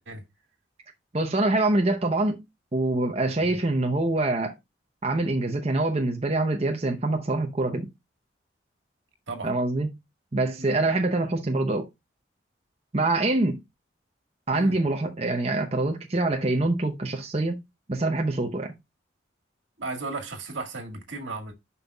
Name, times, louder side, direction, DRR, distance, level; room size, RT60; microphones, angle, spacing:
voice 1, 1.1-2.4 2.7-4.5 5.0-7.9 9.4-9.9 10.3-11.9 12.9-13.6 14.5-17.6 17.9-18.7, right 2 dB, 35° right, 0.7 m, -25 dB
voice 2, 19.8-21.5, right 3 dB, 80° right, 1.9 m, -35 dB
11.0 x 5.4 x 2.3 m
head